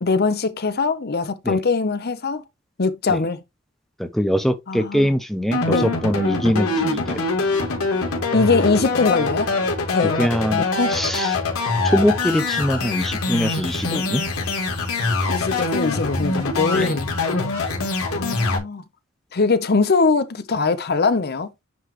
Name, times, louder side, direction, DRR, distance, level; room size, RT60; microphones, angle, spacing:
voice 1, 0.0-2.4 2.8-3.4 4.7-5.1 5.7-5.9 8.3-9.5 9.9-10.2 10.6-11.0 13.9-14.0 15.3-17.1 18.1-18.8 19.3-21.5, left 4 dB, 45° left, 0.7 m, -22 dB
voice 2, 4.0-7.2 10.0-10.6 10.9-11.4 11.9-14.2 16.7-17.0, equal, ahead, 0.6 m, -22 dB
sound 1, 5.5-18.6, left 3 dB, 85° left, 2.6 m, -24 dB
9.4 x 3.3 x 3.2 m
head